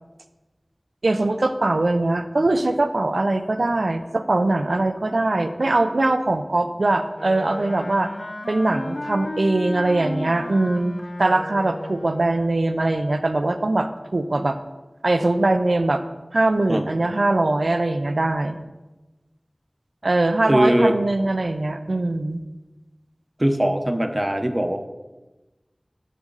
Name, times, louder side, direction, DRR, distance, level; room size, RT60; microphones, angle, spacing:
voice 1, 1.0-8.1 8.5-14.6 15.0-16.0 16.3-18.6 20.0-22.4, right 2 dB, 85° right, 9 dB, 0.5 m, -21 dB
Wind instrument woodwind instrument, 7.1-12.5, left 1 dB, 80° left, 0.6 m, -34 dB
voice 2, 20.5-21.0 23.4-24.9, right 1 dB, 25° right, 7 dB, 0.8 m, -20 dB
10.0 x 6.3 x 4.0 m, 1.1 s
wide cardioid pair, 40°, 0 cm